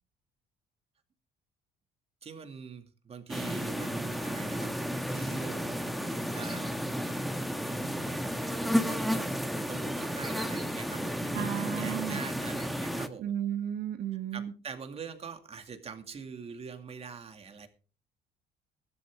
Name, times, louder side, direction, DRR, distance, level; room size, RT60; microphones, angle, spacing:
voice 1, 2.2-4.7 5.1-5.8 6.3-6.7 8.8-13.3 14.1-17.7, right 6 dB, 35° right, 6 dB, 2.3 m, -44 dB
sound 1, 3.3-13.1, equal, ahead, 1.3 m, -32 dB
voice 2, 11.3-12.2 13.2-14.5, right 10 dB, 70° right, 6 dB, 1.2 m, -33 dB
15.0 x 12.5 x 3.6 m, 0.35 s
cardioid pair, 110°, 17 cm